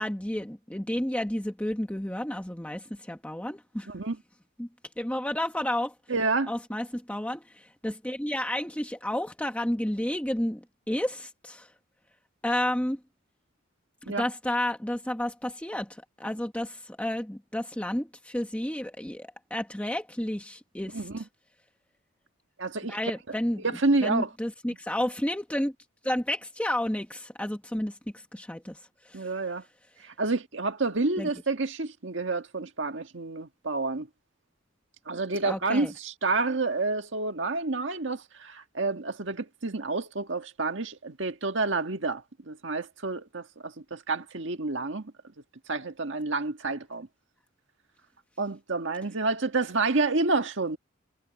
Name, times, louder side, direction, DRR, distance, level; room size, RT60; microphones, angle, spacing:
voice 1, 0.0-3.9 4.6-4.7 5.0-5.9 6.5-11.7 12.4-13.0 14.0-21.0 22.9-23.6 24.0-25.7 26.0-29.3 31.2-31.3 35.4-35.9, left 1 dB, 5° left, 1.2 m, -31 dB
voice 2, 3.9-4.2 6.1-6.5 14.1-14.3 20.9-21.3 22.6-23.0 23.6-24.3 29.1-29.6 30.0-34.1 35.1-45.1 45.7-47.1 48.4-50.8, right 3 dB, 65° right, 1.7 m, -29 dB
head